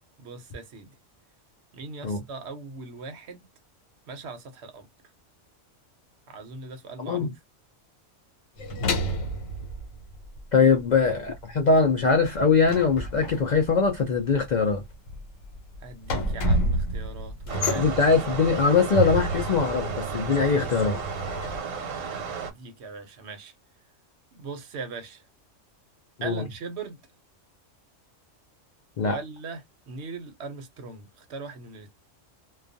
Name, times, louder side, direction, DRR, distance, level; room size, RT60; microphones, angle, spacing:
voice 1, 0.2-0.9 1.7-3.4 4.1-4.9 6.3-7.3 15.8-17.9 21.5-23.5 24.3-25.2 26.2-27.0 29.0-31.9, right 4 dB, 65° right, 0.9 m, -40 dB
sound 1, 8.6-10.8 11.0-21.6, right 1 dB, 85° left, 1.2 m, -30 dB
voice 2, 10.5-14.8 17.7-21.0 26.2-26.5 29.0-29.2, left 5 dB, 65° left, 0.4 m, -22 dB
sound 2, 17.5-22.5, right 6 dB, 90° right, 1.1 m, -34 dB
2.3 x 2.3 x 2.5 m
omnidirectional pair, 1.3 m